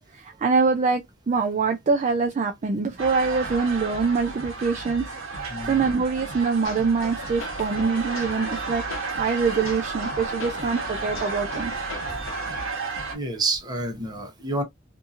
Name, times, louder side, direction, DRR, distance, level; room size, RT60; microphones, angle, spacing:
voice 1, 0.1-5.1 5.3-8.8 9.2-11.7, right 4 dB, 35° right, 0.4 m, -24 dB
sound 1, 3.0-13.1, right 3 dB, 75° right, 1.0 m, -32 dB
sound 2, 6.6-12.6, left 3 dB, 75° left, 0.9 m, -41 dB
voice 2, 13.1-14.6, right 2 dB, 20° right, 0.8 m, -28 dB
2.7 x 2.6 x 2.4 m
head